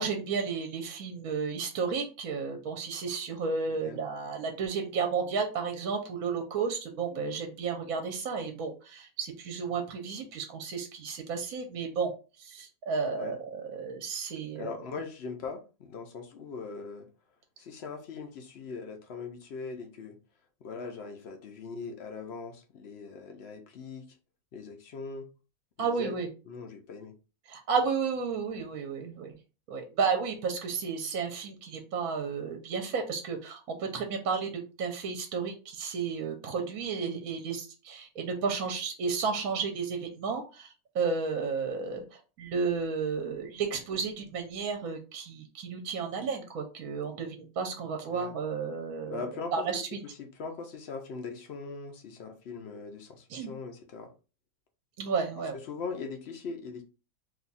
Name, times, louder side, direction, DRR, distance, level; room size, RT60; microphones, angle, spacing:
voice 1, 0.0-12.1 12.4-14.8 25.8-26.3 27.5-29.3 29.7-49.2 49.5-49.8 53.3-53.5 55.0-55.5, right 5 dB, 70° right, 1.0 m, -32 dB
voice 2, 14.5-17.1 17.6-20.2 20.6-24.1 24.5-25.3 25.8-26.2 26.5-27.1 48.1-48.3 49.1-49.6 50.0-54.1 55.5-56.8, left 4 dB, 60° left, 0.7 m, -40 dB
2.7 x 2.3 x 3.9 m
omnidirectional pair, 1.6 m